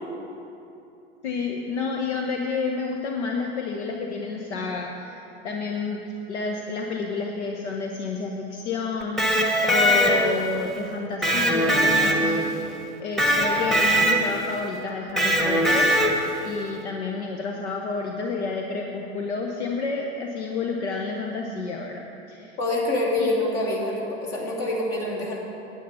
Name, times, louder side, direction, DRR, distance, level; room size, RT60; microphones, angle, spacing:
voice 1, 1.2-6.0 6.3-9.4 9.6-12.5 13.0-15.9 16.4-22.6 23.2-23.3, left 4 dB, 75° left, 1 dB, 1.1 m, -30 dB
Electric guitar, 9.0-10.5 11.2-12.6 13.2-14.5 15.2-16.4, equal, ahead, 1.4 m, -21 dB
voice 2, 22.6-25.4, left 1 dB, 45° left, -3 dB, 3.1 m, -26 dB
9.3 x 9.2 x 6.9 m, 2.9 s
hypercardioid pair, 85°, 34 cm